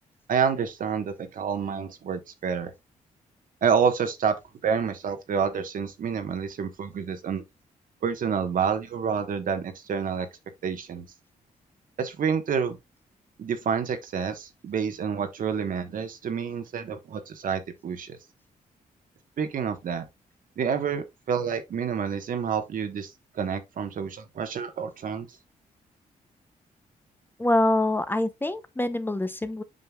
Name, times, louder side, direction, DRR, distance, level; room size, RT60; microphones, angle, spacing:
voice 1, 0.3-2.7 3.6-4.3 4.6-7.4 8.0-10.3 10.6-11.1 12.0-12.8 13.4-18.2 19.4-20.0 20.6-25.3, right 6 dB, 65° right, 1.2 m, -28 dB
voice 2, 27.4-29.6, left 1 dB, 15° left, 0.7 m, -25 dB
7.6 x 5.4 x 2.3 m
cardioid pair, 95°, 15 cm